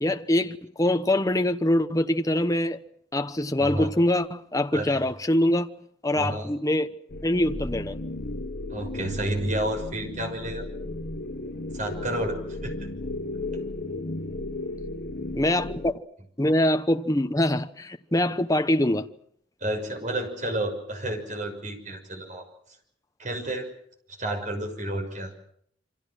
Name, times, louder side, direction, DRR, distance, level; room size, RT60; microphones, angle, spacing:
voice 1, 0.0-2.8 3.1-5.7 6.0-6.9 7.2-8.0 15.3-16.0 16.4-19.1, left 1 dB, 15° left, 1.0 m, -24 dB
voice 2, 3.6-3.9 4.7-5.0 6.1-6.5 8.7-10.7 11.7-12.7 13.5-13.6 19.6-22.5 23.2-23.7 24.1-25.3, right 1 dB, 40° right, 6.2 m, -30 dB
sound 1, 7.1-15.9, left 2 dB, 50° left, 1.5 m, -34 dB
28.0 x 25.5 x 6.2 m
head